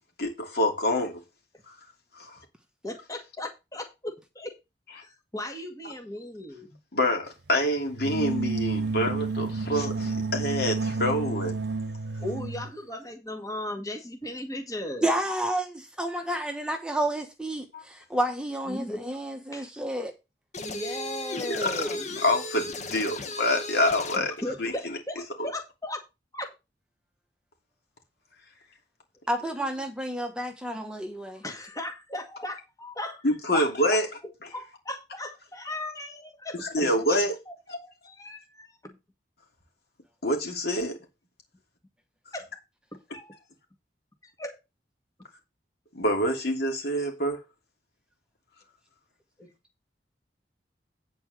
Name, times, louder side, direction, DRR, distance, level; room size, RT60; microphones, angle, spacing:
voice 1, 0.2-1.2 2.1-2.4 6.9-11.5 17.7-17.8 21.3-21.9 22.2-24.7 25.4-25.5 33.2-34.1 36.6-37.4 37.7-37.8 40.2-41.0 45.9-47.4, left 1 dB, 65° left, 3.0 m, -26 dB
voice 2, 2.8-4.6 5.0-6.7 12.2-15.1 18.7-19.1 19.5-19.7 20.6-22.1 24.2-26.0 26.3-26.5 29.4-29.7 31.4-33.2 33.5-34.0 34.5-36.7 37.1-37.2 37.5-39.0 42.3-42.5 42.9-43.4 44.4-44.6 49.4-49.5, left 1 dB, 20° left, 2.0 m, -37 dB
sound 1, 7.9-12.7, right 3 dB, 70° right, 0.8 m, -30 dB
voice 3, 15.0-20.1 29.3-31.4, right 1 dB, 5° right, 1.2 m, -30 dB
sound 2, 20.5-24.3, left 2 dB, 45° left, 1.3 m, -36 dB
9.6 x 4.6 x 6.5 m
head